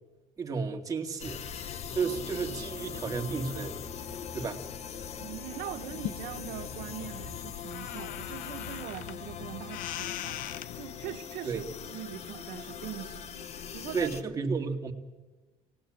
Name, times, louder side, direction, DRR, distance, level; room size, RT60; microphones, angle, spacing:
voice 1, 0.4-1.5 1.9-3.8 4.3-4.6 11.4-11.6 13.9-14.9, right 5 dB, 25° right, 2.4 m, -32 dB
sound 1, 1.2-14.2, left 8 dB, 50° left, 1.1 m, -41 dB
Brass instrument, 1.9-7.7, left 2 dB, 30° left, 2.6 m, -48 dB
voice 2, 5.2-14.2, right 13 dB, 80° right, 1.0 m, -42 dB
sound 2, 5.9-11.2, left 13 dB, 70° left, 0.8 m, -41 dB
25.0 x 18.5 x 8.9 m
cardioid pair, 130°, 15 cm